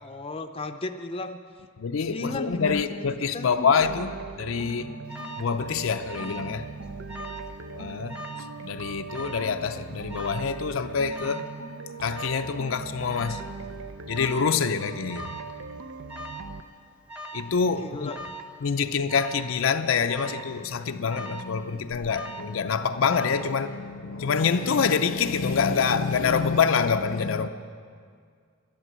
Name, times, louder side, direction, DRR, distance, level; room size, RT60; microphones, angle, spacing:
voice 1, 0.0-1.4 2.1-3.7 17.8-18.2, left 2 dB, 30° left, 0.6 m, -34 dB
voice 2, 1.8-5.0 5.4-6.7 7.7-8.2 8.6-11.5 12.0-13.4 14.1-15.3 17.3-18.1 18.6-27.5, left 5 dB, 75° left, 0.5 m, -26 dB
sound 1, 3.8-16.6, right 4 dB, 70° right, 0.6 m, -40 dB
Alarm, 5.1-5.5 6.1-6.6 6.8-7.5 8.1-8.5 9.1-9.5 10.1-10.5 11.1-11.5 12.1-12.5 13.1-13.5 14.1-14.5 15.1-15.5 16.1-16.5 17.1-17.5 18.1-18.5 19.1-19.5 20.1-20.5 21.1-21.6 22.1-22.6 23.1-23.6, right 1 dB, 5° right, 0.9 m, -40 dB
12.0 x 11.0 x 7.5 m
head